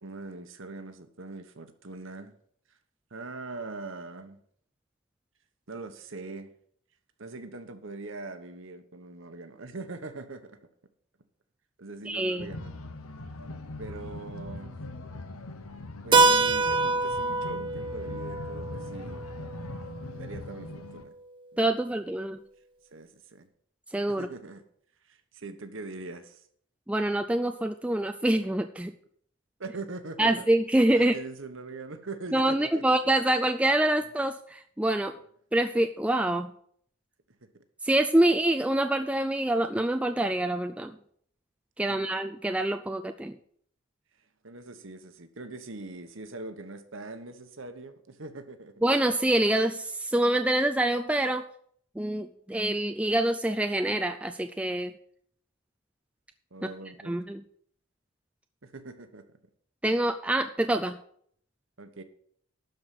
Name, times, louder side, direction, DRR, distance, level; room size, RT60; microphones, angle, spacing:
voice 1, 0.0-2.4 3.1-4.4 5.7-6.5 7.2-10.6 11.8-12.8 13.8-14.8 16.0-19.3 20.1-21.1 21.5-22.0 22.9-23.5 24.1-24.6 25.0-26.4 29.6-30.5 30.9-32.8 41.9-42.0 44.4-48.7 56.5-57.2 58.6-59.2 61.8-62.0, right 3 dB, 60° right, 1.1 m, -42 dB
voice 2, 12.1-12.5 21.6-22.4 23.9-24.3 26.9-28.9 30.2-31.1 32.3-35.1 35.5-36.5 37.8-40.9 41.8-43.4 48.8-51.4 52.0-54.9 56.6-56.7 57.1-57.4 59.8-61.0, right 1 dB, 5° right, 0.3 m, -26 dB
sound 1, 12.4-21.1, left 2 dB, 75° left, 1.0 m, -41 dB
Keyboard (musical), 16.1-20.6, right 3 dB, 20° right, 0.7 m, -26 dB
12.0 x 4.8 x 7.6 m
head